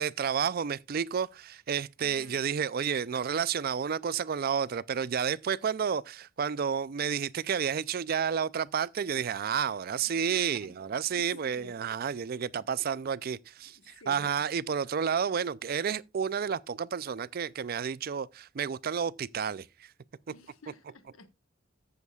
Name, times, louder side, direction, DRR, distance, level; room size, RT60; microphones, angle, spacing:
voice 1, 0.0-19.9, right 7 dB, 45° right, 0.4 m, -31 dB
voice 2, 2.0-2.4 10.0-10.7 11.1-11.7 12.6-12.9 13.7-14.3 20.3-21.3, left 3 dB, 80° left, 1.3 m, -52 dB
14.5 x 7.1 x 2.3 m
head